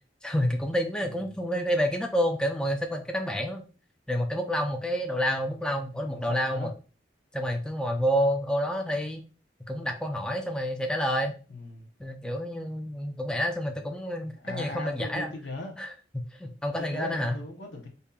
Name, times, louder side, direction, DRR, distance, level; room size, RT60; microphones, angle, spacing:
voice 1, 0.2-3.6 4.1-6.7 7.3-9.2 9.7-11.3 12.0-15.3 15.8-17.4, equal, 5° left, 0.4 m, -29 dB
voice 2, 1.1-1.4 6.1-6.7 11.5-11.9 14.4-15.8 16.8-17.9, left 2 dB, 80° left, 0.8 m, -39 dB
5.1 x 2.7 x 2.3 m
head